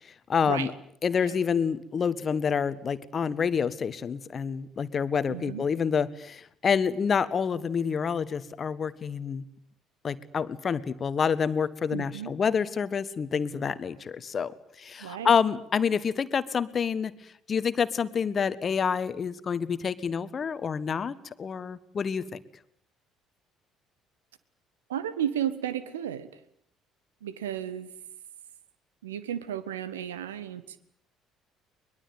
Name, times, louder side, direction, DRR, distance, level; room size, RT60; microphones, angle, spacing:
voice 1, 0.3-0.7 1.0-9.4 10.0-17.1 17.5-22.4, left 6 dB, 40° left, 15 dB, 1.5 m, -28 dB
voice 2, 5.3-5.7 11.9-12.3 15.0-15.4 24.9-26.4 27.2-27.9 29.0-30.8, right 10 dB, 75° right, 15 dB, 1.4 m, -33 dB
23.0 x 22.0 x 9.4 m, 0.66 s
figure-of-eight pair, 50°, 0 cm